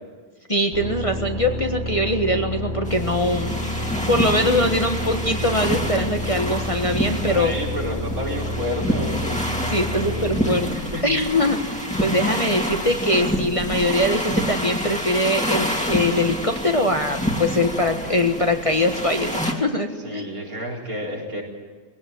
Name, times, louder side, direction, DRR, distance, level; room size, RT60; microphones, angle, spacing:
voice 1, 0.5-3.6 4.1-7.5 9.7-10.7 11.0-11.6 12.0-20.3, left 1 dB, 25° left, 4 dB, 1.4 m, -22 dB
sound 1, 0.7-10.5, left 1 dB, 45° left, 3.2 m, -29 dB
sound 2, 2.8-19.5, equal, 5° left, 2.4 m, -27 dB
voice 2, 7.2-9.4 9.9-11.0 20.0-21.4, equal, 75° right, -2 dB, 4.8 m, -31 dB
21.0 x 17.0 x 9.3 m, 1.5 s
omnidirectional pair, 1.5 m